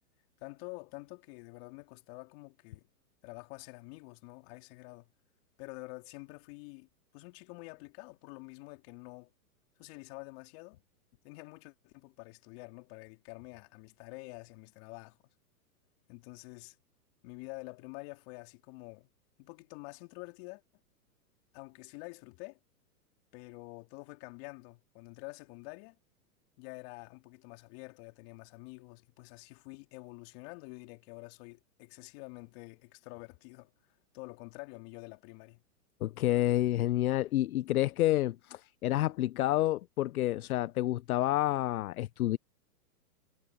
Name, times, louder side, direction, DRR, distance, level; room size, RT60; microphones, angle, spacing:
voice 1, 0.4-2.9 3.2-5.1 5.6-9.3 9.8-10.8 11.2-15.2 16.1-16.8 17.2-19.1 19.4-20.6 21.5-22.6 23.3-26.0 26.6-33.7 34.1-35.6, left 27 dB, 40° left, 3.5 m, -48 dB
voice 2, 36.0-42.4, left 15 dB, 65° left, 0.8 m, -29 dB
hypercardioid pair, 140°, 48 cm